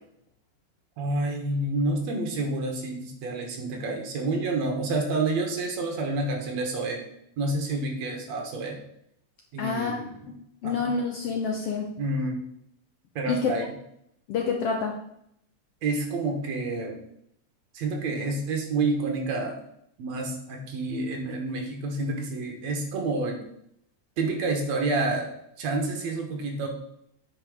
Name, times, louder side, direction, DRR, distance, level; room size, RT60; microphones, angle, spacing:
voice 1, 1.0-7.0 7.4-8.8 9.5-10.2 10.6-10.9 12.0-12.4 13.2-13.7 15.8-17.0 17.7-19.6 20.0-23.4 24.2-25.3 25.6-26.7, right 2 dB, 65° right, 2 dB, 2.4 m, -29 dB
voice 2, 9.6-10.0 10.6-11.9 13.3-13.5 14.3-15.0, left 5 dB, 70° left, 2 dB, 1.5 m, -27 dB
8.8 x 5.1 x 4.9 m, 0.75 s
omnidirectional pair, 3.5 m